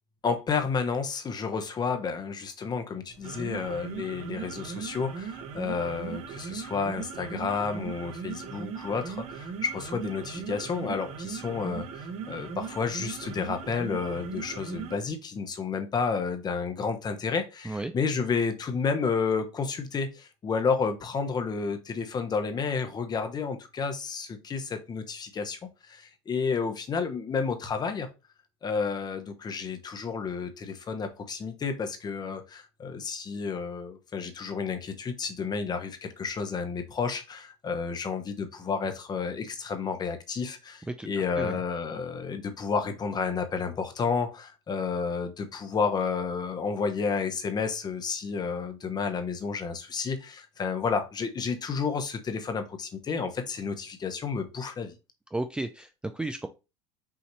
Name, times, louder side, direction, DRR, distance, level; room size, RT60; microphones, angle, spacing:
voice 1, 0.2-28.1 28.6-54.9, left 5 dB, 30° left, 7 dB, 0.9 m, -31 dB
sound 1, 3.1-15.1, right 6 dB, 50° right, 0.9 m, -38 dB
voice 2, 55.3-56.5, right 2 dB, 5° right, 7 dB, 0.4 m, -33 dB
5.7 x 2.7 x 3.1 m, 0.28 s
supercardioid pair, 100°, 14 cm